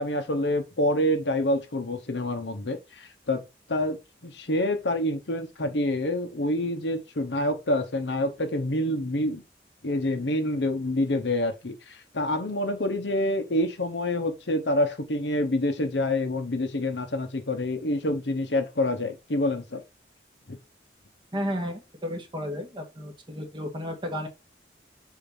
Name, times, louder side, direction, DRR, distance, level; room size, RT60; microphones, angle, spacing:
voice 1, 0.0-9.4 9.8-19.8 20.5-20.6, left 1 dB, 80° left, 1.0 m, -27 dB
voice 2, 21.3-24.3, equal, 30° right, 1.7 m, -33 dB
7.2 x 2.9 x 5.4 m
head